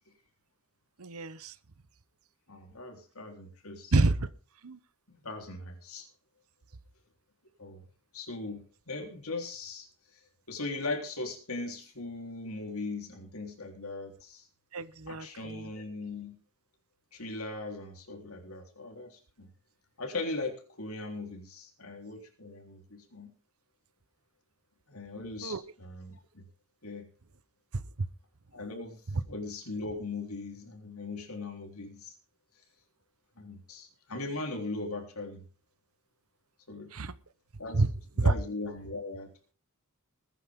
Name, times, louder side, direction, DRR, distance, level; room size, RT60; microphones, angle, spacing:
voice 1, 1.0-1.5 3.9-4.3 4.6-4.8 14.7-15.7 25.4-25.6 29.1-29.2 36.9-37.1 37.7-37.9 38.2-38.3, right 3 dB, 75° right, 14 dB, 0.9 m, -28 dB
voice 2, 2.5-3.9 5.1-6.1 7.6-7.8 8.1-9.9 10.5-14.5 15.1-16.4 17.1-19.5 20.0-23.3 24.9-26.4 26.8-27.1 28.5-29.0 29.3-32.1 33.4-35.4 36.7-36.9 37.6-37.9 38.2-39.3, left 3 dB, 75° left, 4 dB, 3.7 m, -39 dB
20.5 x 10.0 x 3.7 m, 0.38 s
head